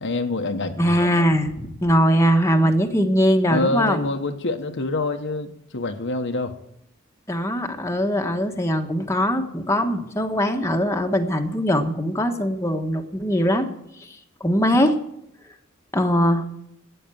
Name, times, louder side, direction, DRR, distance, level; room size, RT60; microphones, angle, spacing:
voice 1, 0.0-0.9 3.5-6.6, left 2 dB, 60° left, 5 dB, 1.1 m, -26 dB
voice 2, 0.8-4.0 7.3-13.7 14.4-14.9 15.9-16.4, equal, 15° left, 3 dB, 1.3 m, -21 dB
12.5 x 9.2 x 9.1 m, 0.78 s
head